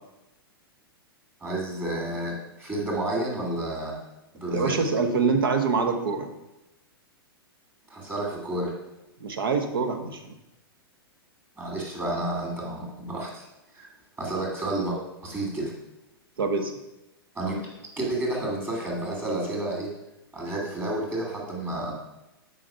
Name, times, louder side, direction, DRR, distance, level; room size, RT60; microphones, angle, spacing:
voice 1, 1.4-4.0 4.3-4.9 7.9-8.7 11.6-13.4 13.7-13.9 14.2-15.7 17.3-17.7 18.0-19.9 20.3-22.0, right 1 dB, 15° right, -2 dB, 2.7 m, -30 dB
voice 2, 4.5-6.3 9.2-10.2 16.4-16.7, right 4 dB, 65° right, 7 dB, 1.2 m, -25 dB
7.5 x 5.1 x 5.8 m, 0.95 s
figure-of-eight pair, 105°, 13 cm